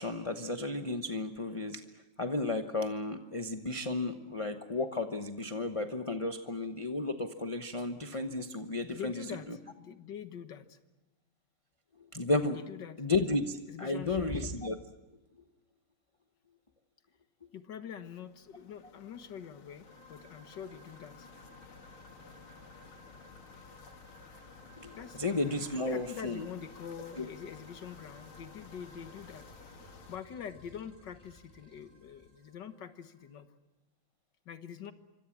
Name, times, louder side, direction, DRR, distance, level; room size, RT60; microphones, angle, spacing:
voice 1, 0.0-1.8 2.2-9.6 12.1-12.6 13.0-14.8 24.8-26.4 27.2-27.3, left 2 dB, 30° left, 6 dB, 0.6 m, -33 dB
voice 2, 8.9-10.8 12.5-13.1 13.7-14.3 17.5-21.3 25.0-25.2 25.5-29.5 29.8-33.5 34.5-34.9, left 8 dB, 60° left, 9 dB, 2.0 m, -45 dB
sound 1, 18.0-30.2, left 5 dB, 90° left, 2.6 m, -54 dB
sound 2, 19.8-33.4, right 2 dB, 80° right, 6.2 m, -60 dB
sound 3, 29.0-32.4, left 1 dB, 10° left, 7.7 m, -61 dB
27.0 x 25.0 x 7.3 m, 1.1 s
omnidirectional pair, 2.3 m